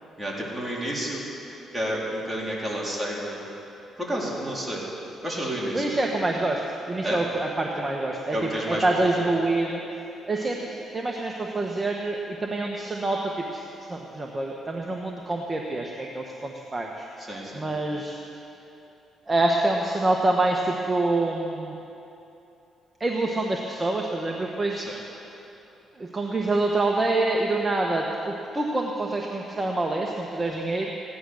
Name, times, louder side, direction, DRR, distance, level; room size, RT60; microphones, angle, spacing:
voice 1, 0.2-1.2 1.7-3.4 4.0-4.8 5.2-5.9 7.0-7.2 8.3-8.8 9.2-9.3 17.3-17.7 24.8-25.0, equal, 5° right, -5 dB, 3.9 m, -30 dB
voice 2, 5.7-6.6 6.9-9.8 10.3-13.6 13.9-17.1 17.5-18.2 19.3-21.7 23.0-24.9 26.0-30.9, right 2 dB, 20° right, 0 dB, 1.2 m, -26 dB
16.0 x 11.0 x 6.5 m, 2.9 s
cardioid pair, 90°, 0 cm